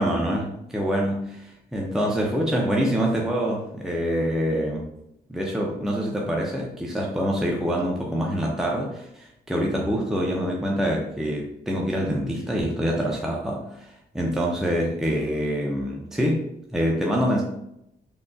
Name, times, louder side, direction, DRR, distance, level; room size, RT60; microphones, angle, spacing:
voice 1, 0.0-4.8 5.3-16.4 16.7-17.4, equal, 5° right, -2 dB, 0.6 m, -25 dB
3.7 x 2.2 x 2.5 m, 0.79 s
cardioid pair, 75°, 17 cm